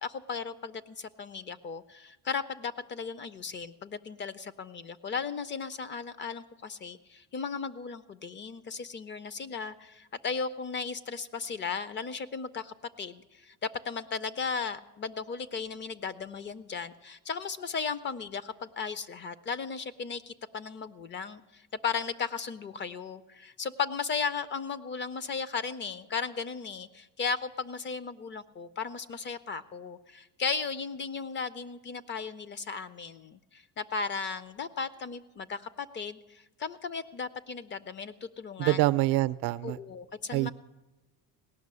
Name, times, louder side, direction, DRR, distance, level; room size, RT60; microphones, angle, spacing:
voice 1, 0.0-38.8 39.6-40.5, left 5 dB, 30° left, 16 dB, 0.4 m, -36 dB
voice 2, 38.6-39.8 40.3-40.5, right 18 dB, 70° right, 15 dB, 0.6 m, -25 dB
17.5 x 6.0 x 9.6 m, 1.0 s
cardioid pair, 130°, 39 cm